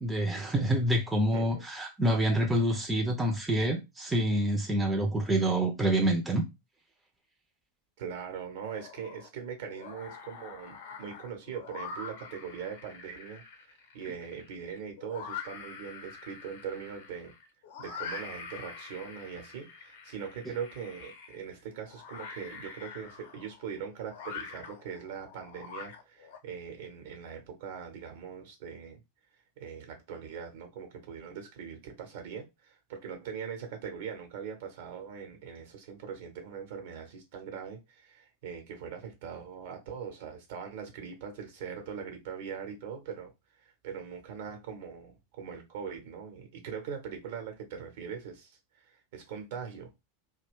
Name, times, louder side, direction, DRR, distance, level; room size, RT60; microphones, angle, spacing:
voice 1, 0.0-6.4, right 1 dB, 10° right, 0.6 m, -27 dB
voice 2, 1.3-1.6 8.0-17.3 17.8-29.0 29.6-43.3 43.6-49.9, right 7 dB, 55° right, 1.0 m, -41 dB
sound 1, 8.6-9.3 9.7-26.4, left 5 dB, 55° left, 0.7 m, -45 dB
2.5 x 2.2 x 3.4 m
figure-of-eight pair, 90°, 0 cm